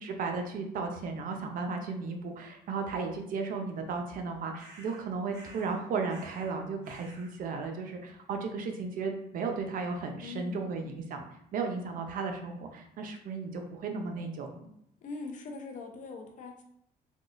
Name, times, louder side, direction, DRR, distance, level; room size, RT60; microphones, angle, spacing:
voice 1, 0.0-11.2 11.5-14.7, right 4 dB, 55° right, 4 dB, 0.5 m, -35 dB
sound 1, 4.6-5.0 5.3-5.8 6.1-6.6 6.8-7.3, right 2 dB, 85° right, 1.0 m, -52 dB
voice 2, 10.2-10.6 15.0-16.6, left 4 dB, 50° left, 3 dB, 0.6 m, -41 dB
3.6 x 2.3 x 2.5 m, 0.76 s
cardioid pair, 110°, 17 cm